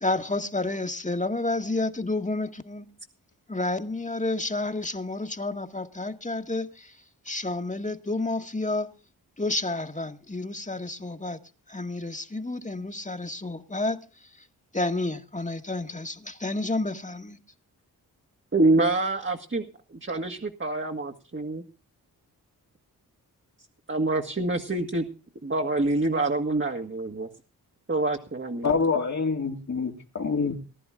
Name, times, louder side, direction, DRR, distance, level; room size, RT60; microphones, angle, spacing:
voice 1, 0.0-2.9 3.5-6.9 7.3-8.9 9.4-11.4 11.7-14.0 14.7-17.4, left 2 dB, 20° left, 1.9 m, -30 dB
voice 2, 18.5-19.6 20.0-21.6 23.9-25.0 25.4-27.3 27.9-28.7, right 2 dB, 30° right, 2.1 m, -26 dB
voice 3, 28.6-30.7, left 4 dB, 45° left, 2.4 m, -26 dB
19.5 x 11.0 x 3.8 m
supercardioid pair, 40°, 38 cm